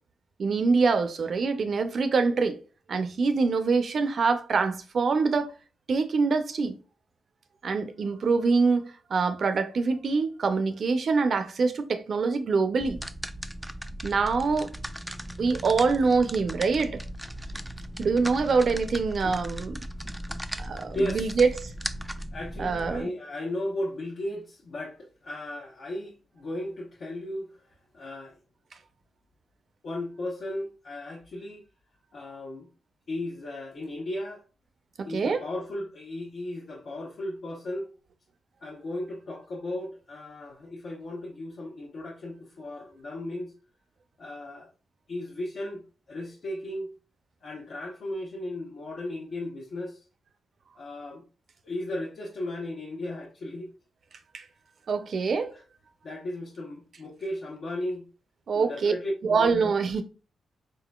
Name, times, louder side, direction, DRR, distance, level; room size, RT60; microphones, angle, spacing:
voice 1, 0.4-2.6 2.9-5.5 5.9-6.7 7.6-13.0 14.0-14.7 15.4-17.0 18.0-19.8 20.6-21.7 22.6-23.1 35.0-35.4 54.3-54.4 54.9-55.5 58.5-58.9 59.2-60.0, right 4 dB, 60° right, 0.5 m, -25 dB
sound 1, 12.8-23.0, equal, 5° right, 0.3 m, -37 dB
voice 2, 20.9-21.3 22.3-27.5 27.9-28.3 29.8-31.6 32.1-32.7 33.1-34.4 35.0-37.9 38.6-43.5 44.2-44.7 45.1-46.9 47.4-50.0 50.8-51.2 51.6-53.7 56.0-58.1 58.5-59.5, left 1 dB, 60° left, 0.9 m, -35 dB
4.2 x 3.7 x 2.3 m
cardioid pair, 80°, 0 cm